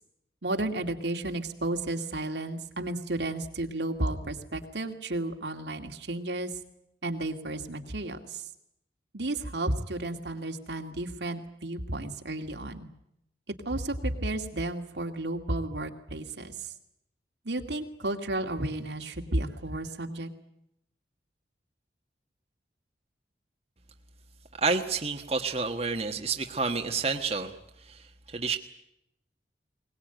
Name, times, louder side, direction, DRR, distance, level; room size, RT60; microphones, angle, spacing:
voice 1, 0.4-6.5 7.0-8.4 9.1-12.9 13.5-16.7 17.4-20.3, right 1 dB, 80° right, 4 dB, 2.4 m, -32 dB
voice 2, 24.5-28.6, right 4 dB, 35° right, 4 dB, 1.4 m, -30 dB
22.0 x 20.0 x 9.2 m, 0.78 s
head